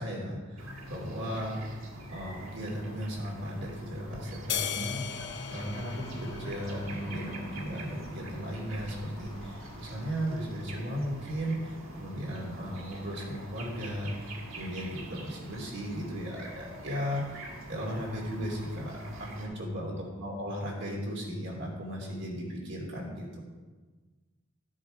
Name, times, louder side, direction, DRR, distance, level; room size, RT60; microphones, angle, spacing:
voice 1, 0.0-1.6 2.1-17.3 17.7-23.4, equal, 60° right, -2 dB, 3.0 m, -36 dB
sound 1, 0.6-19.5, right 1 dB, 90° right, 1.9 m, -45 dB
sound 2, 4.5-7.1, left 9 dB, 60° left, 0.7 m, -36 dB
sound 3, 5.0-10.1, equal, 30° left, 2.0 m, -48 dB
13.0 x 6.4 x 5.0 m, 1.3 s
head